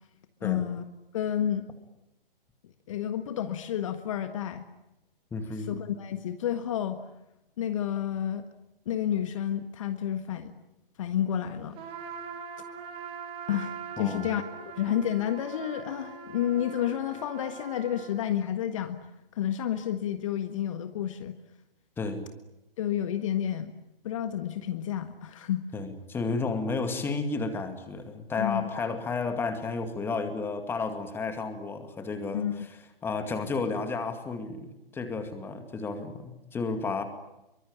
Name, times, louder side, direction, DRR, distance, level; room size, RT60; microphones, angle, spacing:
voice 1, 0.4-0.8 1.1-1.6 2.9-4.7 5.6-7.0 7.6-8.4 8.8-10.5 11.0-11.8 13.5-19.0 19.3-21.4 22.8-23.7 24.0-25.6 28.4-28.7 32.3-32.7, left 10 dB, 35° left, 9 dB, 1.6 m, -30 dB
voice 2, 5.3-5.7 14.0-14.3 22.0-22.3 25.7-32.8 33.0-37.0, left 4 dB, 10° left, 8 dB, 2.3 m, -32 dB
Trumpet, 11.8-18.2, right 6 dB, 20° right, 3.5 m, -42 dB
27.0 x 24.0 x 9.0 m, 0.92 s
figure-of-eight pair, 130°, 29 cm